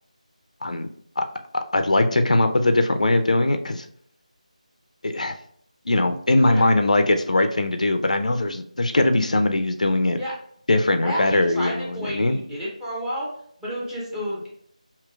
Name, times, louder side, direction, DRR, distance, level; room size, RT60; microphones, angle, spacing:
voice 1, 1.5-3.8 5.0-5.3 5.9-10.2 10.7-12.4, left 2 dB, 65° left, 7 dB, 0.4 m, -21 dB
voice 2, 11.0-13.3 13.6-14.5, equal, 5° right, -5 dB, 0.6 m, -31 dB
4.9 x 2.8 x 2.3 m, 0.64 s
figure-of-eight pair, 165°, 4 cm